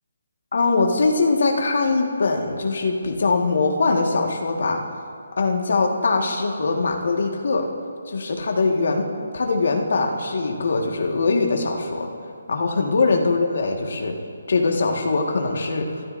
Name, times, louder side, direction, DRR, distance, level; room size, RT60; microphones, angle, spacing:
voice 1, 0.5-4.8 5.4-7.7 8.1-12.1 12.5-14.1 14.5-15.9, left 3 dB, 55° left, 2 dB, 1.7 m, -22 dB
27.0 x 13.5 x 2.7 m, 2.3 s
hypercardioid pair, 175°, 0 cm